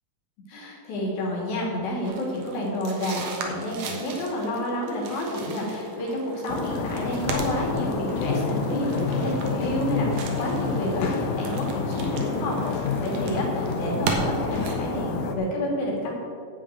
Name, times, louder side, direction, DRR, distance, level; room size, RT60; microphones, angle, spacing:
voice 1, 0.5-16.1, left 1 dB, 90° left, -3 dB, 4.4 m, -29 dB
sound 1, 2.0-14.8, right 3 dB, 80° right, 3.1 m, -37 dB
sound 2, 6.5-15.3, left 4 dB, 70° left, 2.2 m, -28 dB
11.0 x 5.8 x 8.7 m, 2.3 s
omnidirectional pair, 4.0 m